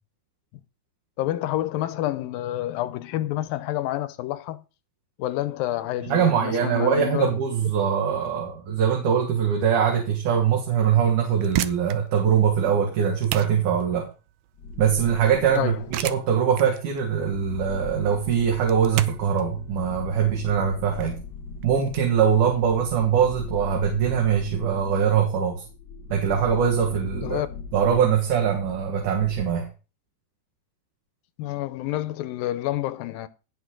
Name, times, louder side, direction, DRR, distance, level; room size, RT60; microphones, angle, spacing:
voice 1, 1.2-4.6 5.2-7.4 15.5-15.8 27.2-27.5 31.4-33.3, left 14 dB, 80° left, 2.4 m, -28 dB
voice 2, 6.1-14.1 14.8-21.2 21.6-25.6 26.1-27.5 27.7-29.7, right 8 dB, 60° right, 3.0 m, -22 dB
sound 1, 11.2-22.0, right 14 dB, 80° right, 2.1 m, -35 dB
sound 2, 14.6-16.3 16.9-29.4, left 4 dB, 40° left, 1.8 m, -39 dB
17.0 x 6.5 x 3.8 m
omnidirectional pair, 4.3 m